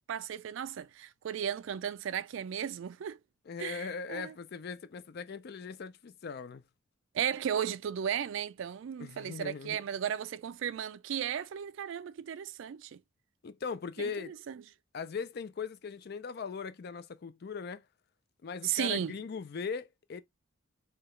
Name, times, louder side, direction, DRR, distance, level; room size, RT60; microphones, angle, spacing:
voice 1, 0.1-3.2 3.6-4.3 7.1-13.0 14.0-14.6 18.6-19.2, right 9 dB, 65° right, 0.3 m, -35 dB
voice 2, 3.5-6.7 9.0-9.8 13.4-14.3 14.9-17.8 18.4-20.2, left 5 dB, 50° left, 0.4 m, -39 dB
4.8 x 2.3 x 3.0 m
head